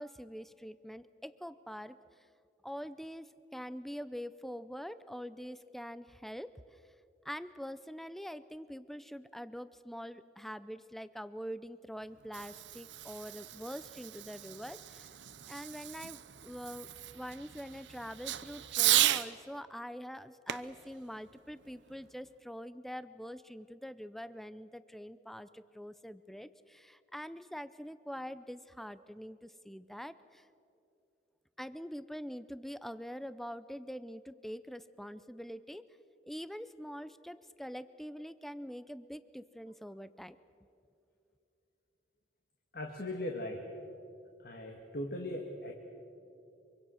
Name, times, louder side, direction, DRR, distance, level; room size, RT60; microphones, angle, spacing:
voice 1, 0.0-2.0 2.6-6.8 7.2-15.1 15.5-30.5 31.6-35.9 36.3-40.4, equal, ahead, 14 dB, 0.5 m, -44 dB
Fireworks, 12.0-19.3 20.5-22.1, right 13 dB, 85° right, 0.8 m, -35 dB
voice 2, 42.7-43.6 44.4-45.7, left 1 dB, 55° left, 2 dB, 2.0 m, -39 dB
25.0 x 24.5 x 6.4 m, 2.6 s
head